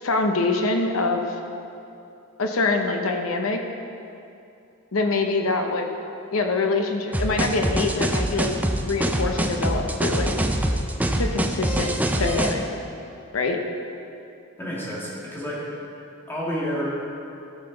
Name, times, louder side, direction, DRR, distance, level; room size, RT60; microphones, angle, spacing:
voice 1, 0.0-1.3 2.4-3.6 4.9-5.9 6.3-8.5 8.8-10.3 11.2-12.6 13.3-13.6, left 3 dB, 75° left, 4 dB, 0.8 m, -24 dB
sound 1, 7.1-12.5, right 1 dB, 5° right, 0.4 m, -24 dB
voice 2, 14.6-15.7 16.3-16.9, equal, 10° left, -7 dB, 2.0 m, -29 dB
14.0 x 5.8 x 3.9 m, 2.7 s
head